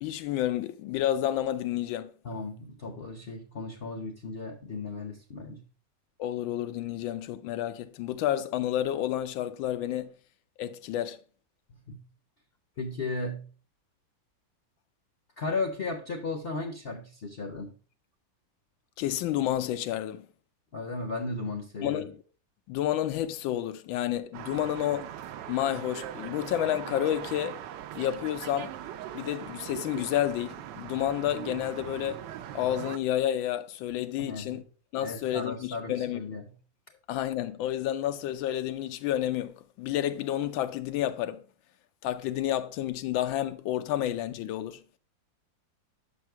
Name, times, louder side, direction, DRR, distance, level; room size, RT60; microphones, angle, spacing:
voice 1, 0.0-2.1 6.2-10.1 10.6-11.2 19.0-20.3 21.8-22.2 22.7-25.1 25.5-27.6 27.9-28.7 29.1-32.3 32.5-34.6 34.9-36.2 37.1-41.4 42.0-44.8, left 12 dB, 85° left, 1.4 m, -30 dB
voice 2, 2.2-5.6 11.7-12.0 12.8-13.5 15.4-17.7 20.7-22.1 34.2-34.6 35.0-36.5, left 3 dB, 50° left, 0.7 m, -35 dB
sound 1, 24.3-33.0, right 11 dB, 75° right, 1.1 m, -40 dB
6.3 x 5.6 x 4.5 m
omnidirectional pair, 2.1 m